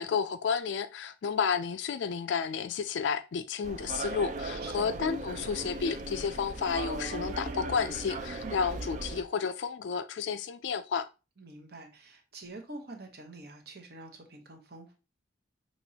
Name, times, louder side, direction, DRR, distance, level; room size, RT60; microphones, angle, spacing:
voice 1, 0.0-11.1, left 6 dB, 75° left, 0.3 m, -31 dB
sound 1, 3.6-9.2, right 2 dB, 40° right, 0.4 m, -38 dB
voice 2, 4.6-5.1 8.4-8.6 11.4-15.0, right 2 dB, 55° right, 1.0 m, -46 dB
6.1 x 3.0 x 2.8 m
head